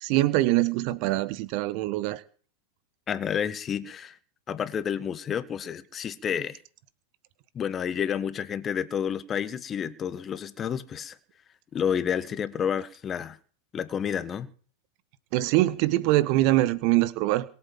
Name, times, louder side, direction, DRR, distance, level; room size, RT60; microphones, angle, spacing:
voice 1, 0.0-2.2 15.3-17.4, right 17 dB, 45° right, 1.3 m, -23 dB
voice 2, 3.1-4.2 4.5-6.6 7.5-11.2 11.7-13.4 13.7-14.5, left 8 dB, 25° left, 1.5 m, -30 dB
22.0 x 8.5 x 7.6 m
figure-of-eight pair, 90°, 0 cm